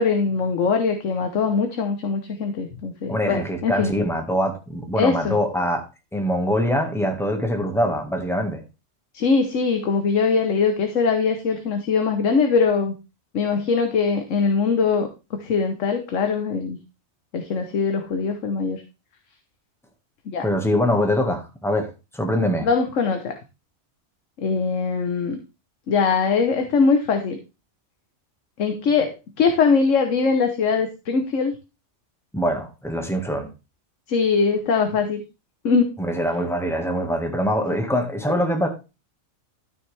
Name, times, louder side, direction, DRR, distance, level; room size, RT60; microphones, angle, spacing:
voice 1, 0.0-3.9 5.0-5.4 9.1-12.9 13.3-16.8 17.3-18.8 20.3-20.5 22.6-23.4 24.4-25.4 25.9-27.4 28.6-31.5 34.1-35.2 35.6-36.0, left 5 dB, 80° left, 1.4 m, -22 dB
voice 2, 3.1-5.8 6.1-8.6 20.4-22.7 32.3-33.5 36.0-38.7, equal, ahead, 1.6 m, -23 dB
12.5 x 6.1 x 3.4 m
omnidirectional pair, 1.3 m